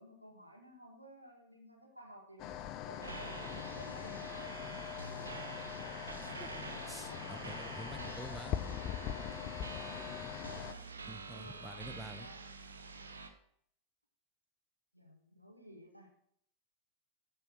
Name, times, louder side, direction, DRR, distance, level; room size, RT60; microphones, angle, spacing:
voice 1, 0.0-4.6 7.1-7.2 9.4-9.6 10.4-10.9 11.2-12.4 14.9-16.1, equal, 90° right, 0 dB, 1.7 m, -55 dB
sound 1, 2.4-10.7, left 11 dB, 40° left, 0.5 m, -42 dB
sound 2, 3.0-13.3, right 4 dB, 75° right, 0.9 m, -47 dB
voice 2, 6.2-8.6 11.1-12.3, right 1 dB, 5° right, 11 dB, 0.6 m, -49 dB
10.5 x 4.4 x 6.2 m, 0.68 s
figure-of-eight pair, 90°, 0 cm